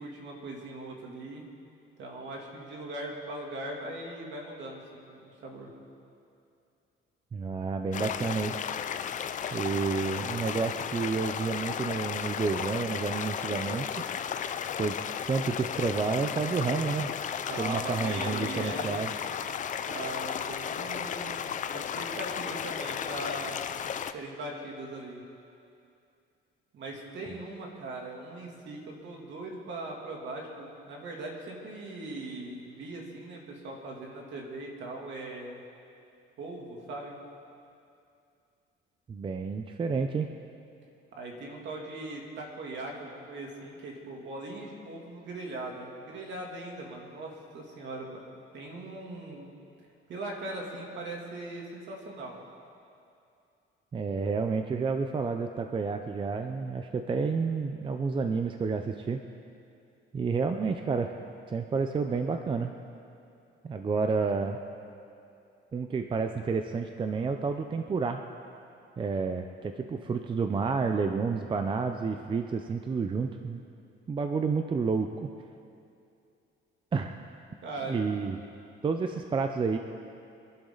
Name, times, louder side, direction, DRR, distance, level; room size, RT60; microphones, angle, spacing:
voice 1, 0.0-1.4 2.0-5.7 17.5-19.0 19.9-21.4 21.7-23.6 24.1-25.2 26.7-35.6 36.4-37.2 41.1-48.2 48.5-49.5 50.1-52.4 77.6-78.1, right 2 dB, 60° right, -1 dB, 2.7 m, -40 dB
voice 2, 7.3-8.6 9.5-13.9 14.8-17.1 17.6-19.1 27.3-27.4 39.1-40.3 53.9-59.2 60.1-61.1 61.5-62.7 63.6-64.6 65.7-68.2 69.0-73.6 74.1-75.3 76.9-77.2 77.9-78.4 78.8-79.8, right 5 dB, 25° right, 6 dB, 0.5 m, -30 dB
sound 1, 7.9-24.1, left 8 dB, 40° left, 0.5 m, -34 dB
24.5 x 11.5 x 3.9 m, 2.5 s
cardioid pair, 150°, 21 cm